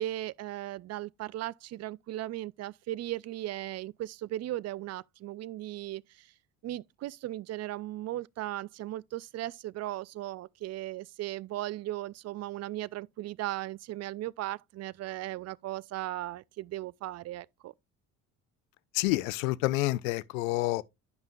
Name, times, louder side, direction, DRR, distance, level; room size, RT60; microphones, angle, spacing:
voice 1, 0.0-6.0 6.6-17.7, right 15 dB, 40° right, 0.4 m, -37 dB
voice 2, 18.9-20.8, left 19 dB, 85° left, 0.5 m, -28 dB
11.0 x 5.5 x 2.4 m
hypercardioid pair, 60°, 40 cm